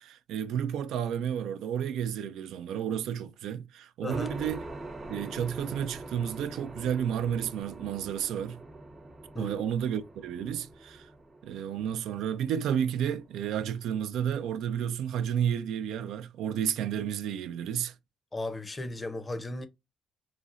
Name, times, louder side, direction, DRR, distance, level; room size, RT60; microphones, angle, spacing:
voice 1, 0.0-4.6 5.1-8.6 9.4-11.1 11.4-17.9, right 9 dB, 85° right, 0.3 m, -31 dB
voice 2, 4.0-4.3 9.3-9.6 18.3-19.7, left 2 dB, 25° left, 0.5 m, -35 dB
sound 1, 4.1-14.2, right 2 dB, 25° right, 0.7 m, -44 dB
3.9 x 2.0 x 2.3 m
cardioid pair, 90°, 0 cm